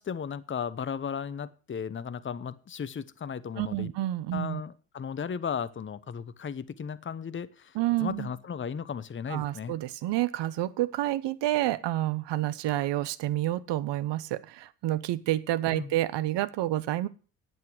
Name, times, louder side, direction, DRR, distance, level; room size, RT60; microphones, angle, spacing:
voice 1, 0.0-3.9 4.3-9.7 15.7-15.9, left 7 dB, 25° left, 0.9 m, -35 dB
voice 2, 3.6-4.6 7.7-8.3 9.3-17.1, right 14 dB, 55° right, 1.0 m, -29 dB
11.0 x 8.3 x 6.6 m
hypercardioid pair, 50°, 50 cm